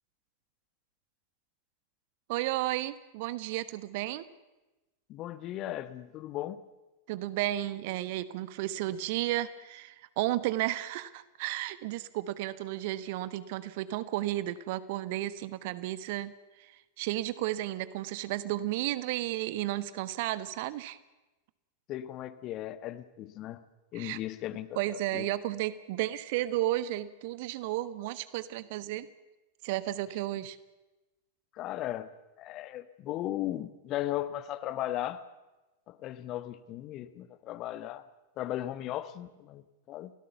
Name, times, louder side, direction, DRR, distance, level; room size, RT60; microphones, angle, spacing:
voice 1, 2.3-4.3 7.1-21.0 23.9-24.2 24.7-29.1 29.6-30.6, right 15 dB, 50° right, 15 dB, 1.2 m, -33 dB
voice 2, 5.1-6.6 21.9-23.6 23.9-24.7 25.1-25.2 31.6-32.1 32.4-35.2 35.9-38.0 38.4-40.1, left 13 dB, 35° left, 14 dB, 1.3 m, -36 dB
29.5 x 17.0 x 7.0 m, 1.1 s
figure-of-eight pair, 90°, 0 cm